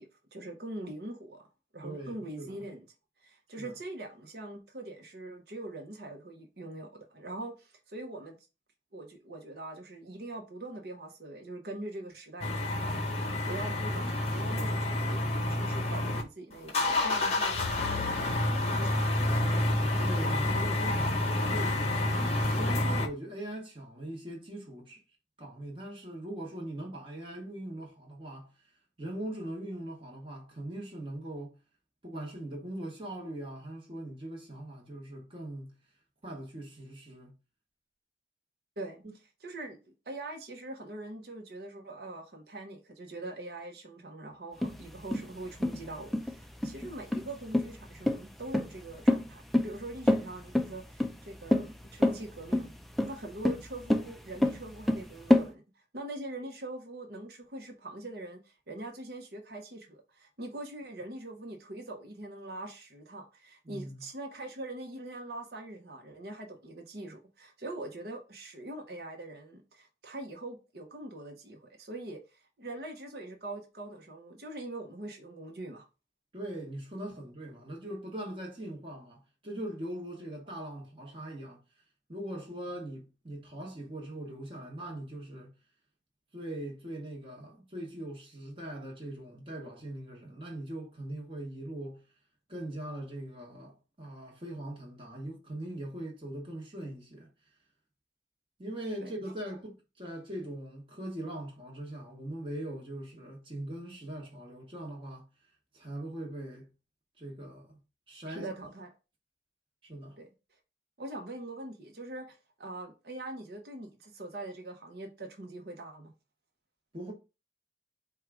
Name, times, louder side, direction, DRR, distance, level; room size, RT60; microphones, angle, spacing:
voice 1, 0.0-1.5 1.7-2.9 3.2-8.4 8.9-17.6 18.2-19.2 38.8-39.0 39.4-52.7 53.0-75.9 99.0-99.1 108.3-108.9 110.2-110.3 111.0-116.1, right 2 dB, 60° right, 0.9 m, -43 dB
voice 2, 1.8-2.6 3.6-3.8 20.0-22.1 22.4-25.0 25.4-28.5 29.0-31.6 32.0-35.7 36.2-37.3 63.6-64.0 76.3-81.6 82.1-85.5 86.3-92.0 92.5-97.3 98.6-105.3 105.7-106.7 107.2-107.7 108.1-108.5 109.8-110.2 116.9-117.1, right 1 dB, 30° right, 1.2 m, -41 dB
sound 1, 12.4-16.2 16.5-23.1, left 1 dB, 35° left, 0.7 m, -29 dB
sound 2, 44.6-55.5, left 1 dB, ahead, 0.3 m, -28 dB
4.6 x 2.3 x 4.8 m
head